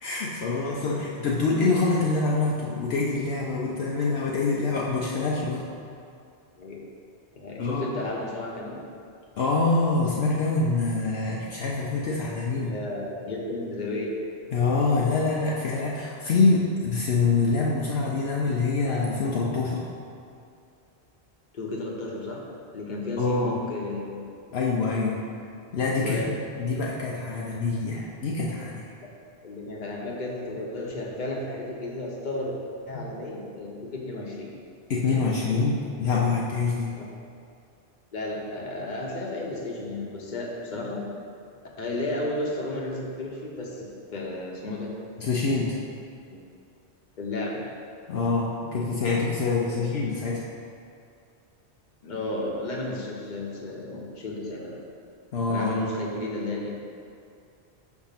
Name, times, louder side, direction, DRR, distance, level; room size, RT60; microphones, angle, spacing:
voice 1, 0.0-5.6 7.6-7.9 9.4-12.7 14.5-19.9 23.2-23.5 24.5-25.2 25.7-28.8 32.9-33.1 34.9-37.0 45.2-45.7 48.1-50.4 55.3-55.9, left 3 dB, 70° left, -4 dB, 0.9 m, -25 dB
voice 2, 0.7-1.1 6.6-6.8 7.3-8.8 12.3-12.4 12.7-14.1 21.5-22.4 22.7-24.6 25.9-26.3 29.0-29.1 29.4-32.6 32.9-34.5 36.9-37.1 38.1-41.1 41.8-44.9 46.3-46.4 47.2-47.6 49.7-50.1 52.0-54.8 55.5-56.8, left 2 dB, 45° left, -2 dB, 1.0 m, -33 dB
6.3 x 3.5 x 5.7 m, 2.5 s
omnidirectional pair, 1.1 m